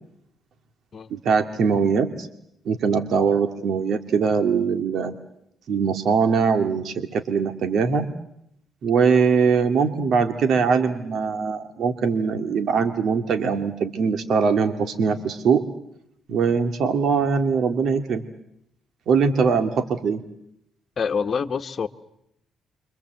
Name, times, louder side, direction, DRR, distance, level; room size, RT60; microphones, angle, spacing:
voice 1, 1.1-2.3 2.7-5.2 5.7-8.1 8.8-15.6 16.3-18.2 19.1-20.2, right 5 dB, 65° right, 2.3 m, -21 dB
voice 2, 21.0-21.9, left 6 dB, 45° left, 1.4 m, -26 dB
29.5 x 25.0 x 8.0 m
cardioid pair, 90°, 0 cm